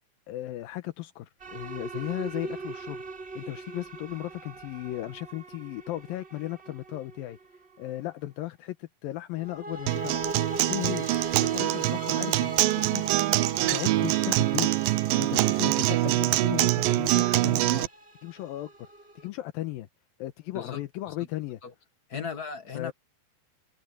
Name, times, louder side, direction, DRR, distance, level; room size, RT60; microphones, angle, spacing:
voice 1, 0.3-3.0 3.4-7.4 7.8-10.2 10.7-11.1 11.4-13.0 13.7-14.7 15.2-17.9 18.2-18.7 19.2-19.9 20.2-21.6 22.1-22.3 22.7-22.9, left 16 dB, 80° left, 2.7 m, -36 dB
sound 1, 1.4-7.9 9.4-19.3, right 2 dB, 15° right, 4.8 m, -41 dB
Acoustic guitar, 9.9-17.9, right 17 dB, 80° right, 2.3 m, -24 dB
voice 2, 22.1-22.9, left 6 dB, 40° left, 1.5 m, -36 dB
omnidirectional pair, 4.2 m